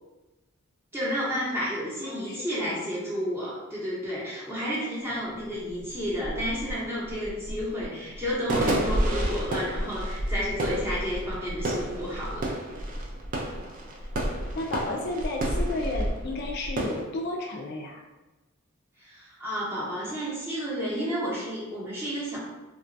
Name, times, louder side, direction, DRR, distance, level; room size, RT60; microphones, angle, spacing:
voice 1, 0.9-12.5 19.0-22.4, equal, 10° right, -7 dB, 0.7 m, -31 dB
voice 2, 2.0-2.9 14.5-18.0, left 2 dB, 50° left, 1 dB, 0.3 m, -33 dB
sound 1, 5.1-5.2 5.5-17.0, right 1 dB, 40° right, 0.4 m, -30 dB
2.8 x 2.2 x 2.6 m, 1.1 s
head